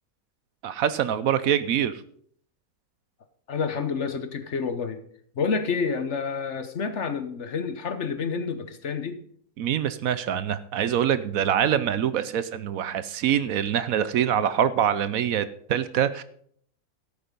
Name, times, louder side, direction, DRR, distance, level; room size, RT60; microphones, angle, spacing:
voice 1, 0.6-2.0 9.6-16.2, right 9 dB, 70° right, 15 dB, 1.0 m, -25 dB
voice 2, 3.5-5.0 5.4-9.2, left 5 dB, 50° left, 10 dB, 1.2 m, -29 dB
13.0 x 8.4 x 5.3 m, 0.63 s
omnidirectional pair, 1.6 m